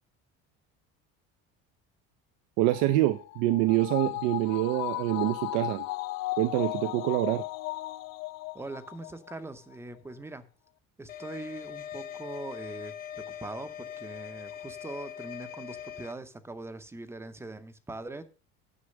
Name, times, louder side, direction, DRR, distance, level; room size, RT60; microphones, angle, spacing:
voice 1, 2.6-5.9 6.4-7.4, right 16 dB, 80° right, 0.7 m, -26 dB
sound 1, 2.7-9.4 9.7-9.8, left 20 dB, 55° left, 0.6 m, -36 dB
voice 2, 8.5-10.5 11.0-18.2, right 2 dB, 10° right, 0.6 m, -42 dB
sound 2, 11.1-16.1, left 10 dB, 30° left, 0.8 m, -42 dB
9.8 x 6.0 x 6.4 m
cardioid pair, 160°, 30 cm